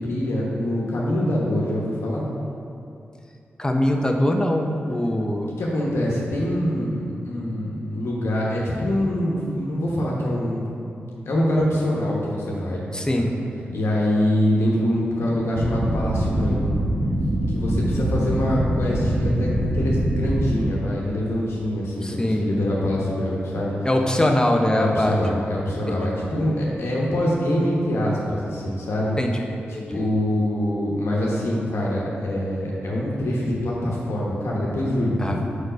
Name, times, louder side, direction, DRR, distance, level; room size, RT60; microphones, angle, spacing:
voice 1, 0.0-2.3 5.6-10.7 11.2-12.8 13.1-13.2 13.7-16.8 17.5-23.9 24.7-29.1 29.9-35.4, left 1 dB, 75° left, -4 dB, 1.1 m, -24 dB
voice 2, 3.6-5.5 12.9-13.3 22.0-22.4 23.8-25.2 25.9-26.3 29.2-29.5 29.7-30.1 35.2-35.4, left 1 dB, 15° left, 2 dB, 0.7 m, -22 dB
sound 1, 15.6-20.5, right 1 dB, 80° right, 1.1 m, -23 dB
4.9 x 4.5 x 5.1 m, 2.6 s
cardioid pair, 45°, 4 cm